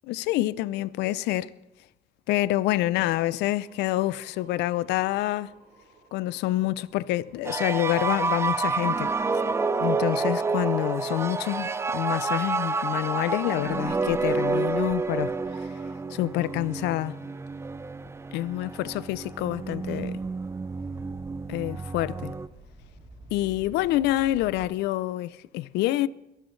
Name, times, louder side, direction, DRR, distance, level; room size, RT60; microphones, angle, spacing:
voice 1, 0.1-1.5 2.3-5.5 6.1-9.1 9.8-15.7 16.1-17.2 18.3-20.2 21.5-22.3 23.3-26.1, left 15 dB, 85° left, 0.5 m, -27 dB
sound 1, 3.6-13.5, right 4 dB, 55° right, 5.5 m, -57 dB
sound 2, 7.4-22.5, right 4 dB, 15° right, 0.4 m, -29 dB
sound 3, 17.4-24.7, right 2 dB, 30° right, 3.3 m, -51 dB
22.5 x 12.5 x 3.2 m
cardioid pair, 110°, 17 cm